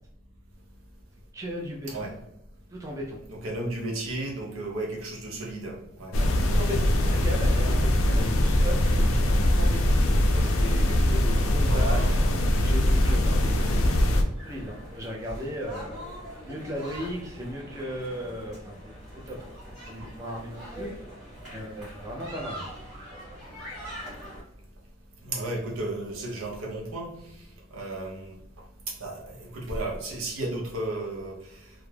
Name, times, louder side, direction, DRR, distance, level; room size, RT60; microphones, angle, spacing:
voice 1, 1.3-2.1 2.7-3.2 6.2-9.9 10.3-12.1 12.6-16.0 16.4-19.5 19.9-20.9 21.5-22.7, equal, 15° right, -2 dB, 0.4 m, -36 dB
voice 2, 3.3-6.1 11.6-12.2 25.2-27.1 27.7-28.4 28.9-31.7, right 2 dB, 85° right, 0 dB, 0.7 m, -34 dB
sound 1, 6.1-14.2, left 1 dB, 85° left, 0.4 m, -22 dB
sound 2, 14.4-24.4, equal, ahead, 1.0 m, -42 dB
2.3 x 2.0 x 3.1 m, 0.83 s
head